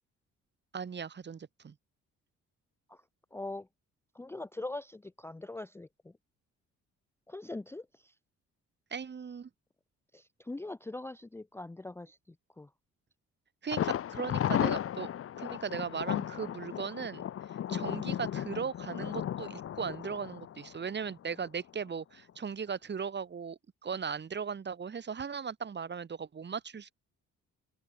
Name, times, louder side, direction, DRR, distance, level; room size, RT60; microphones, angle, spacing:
voice 1, 0.7-1.7 8.9-9.5 13.6-15.1 15.4-17.2 17.7-26.9, right 6 dB, 35° right, 1.6 m, -38 dB
voice 2, 3.3-3.7 4.1-6.1 7.3-8.1 10.1-12.2 12.6-12.7 17.7-17.9, left 2 dB, 10° left, 0.5 m, -42 dB
Thunder, 13.7-21.5 21.8-21.9 22.3-22.4, left 10 dB, 50° left, 0.8 m, -35 dB
open air
cardioid pair, 90°, 30 cm